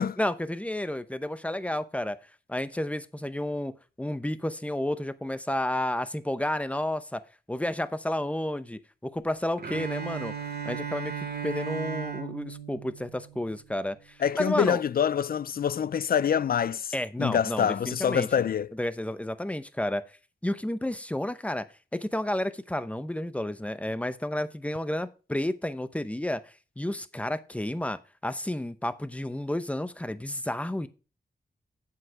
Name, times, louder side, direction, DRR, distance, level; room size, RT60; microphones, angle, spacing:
voice 1, 0.2-2.2 2.5-7.2 7.5-10.3 10.6-11.1 11.4-14.8 16.9-18.3 18.8-20.0 20.4-21.7 21.9-26.4 26.8-30.9, left 1 dB, 10° left, 0.8 m, -31 dB
Bowed string instrument, 9.6-13.7, right 7 dB, 75° right, 1.9 m, -36 dB
voice 2, 14.2-16.9 17.2-18.7, left 8 dB, 65° left, 0.4 m, -26 dB
8.4 x 7.9 x 4.7 m
wide cardioid pair, 80°, 17 cm